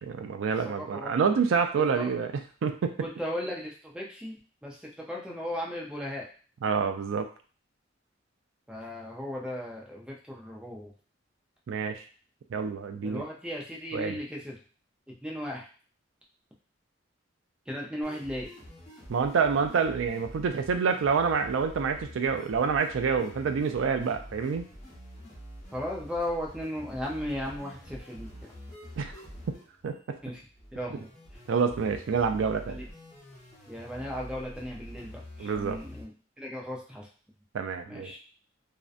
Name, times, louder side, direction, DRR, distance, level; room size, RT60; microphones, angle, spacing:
voice 1, 0.0-2.3 2.6-2.9 6.6-7.3 11.7-12.0 12.5-13.2 13.9-14.2 19.1-24.7 29.0-29.1 29.8-30.2 31.5-32.8 35.4-35.8 37.5-38.1, right 5 dB, 85° right, 6 dB, 0.4 m, -27 dB
voice 2, 0.7-1.1 1.8-2.1 3.0-4.3 4.6-6.3 8.7-10.9 13.0-14.6 15.2-15.7 17.7-18.5 25.7-28.3 30.2-30.4 30.7-31.1 32.7-32.8 33.7-36.1 36.4-37.1 37.9-38.2, left 1 dB, 5° right, -2 dB, 0.5 m, -36 dB
sound 1, 18.0-36.0, equal, 40° left, 1.0 m, -47 dB
2.6 x 2.1 x 2.4 m, 0.40 s
head